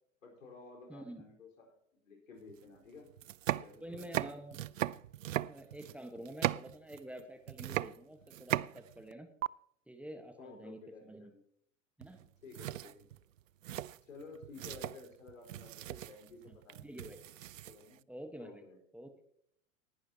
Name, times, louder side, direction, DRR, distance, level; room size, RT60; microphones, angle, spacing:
voice 1, 0.2-3.1 3.6-4.2 10.4-11.4 12.4-13.1 14.0-17.1 17.7-18.0 18.4-18.8, left 4 dB, 80° left, 2 dB, 4.6 m, -53 dB
voice 2, 0.9-1.2 3.8-4.6 5.4-9.3 9.9-11.3 12.0-12.2 16.5-16.6 16.8-17.2 18.1-18.6 18.9-19.1, right 1 dB, 5° right, 7 dB, 1.3 m, -48 dB
sound 1, 2.5-2.6 3.1-7.2 7.5-9.1 9.4-9.5 12.0-12.3 12.5-18.0, right 13 dB, 80° right, 0.5 m, -38 dB
19.0 x 11.5 x 2.9 m, 0.66 s
hypercardioid pair, 95°, 39 cm